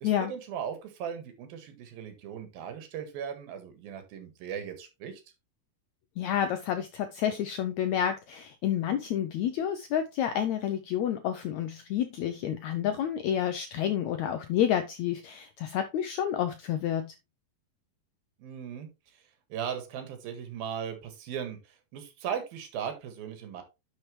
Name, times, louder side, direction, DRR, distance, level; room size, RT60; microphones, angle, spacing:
voice 1, 0.0-5.2 18.4-18.9 19.5-23.6, right 8 dB, 85° right, 3.5 m, -38 dB
voice 2, 6.2-17.1, left 10 dB, 80° left, 1.6 m, -29 dB
10.5 x 5.9 x 3.2 m
omnidirectional pair, 4.1 m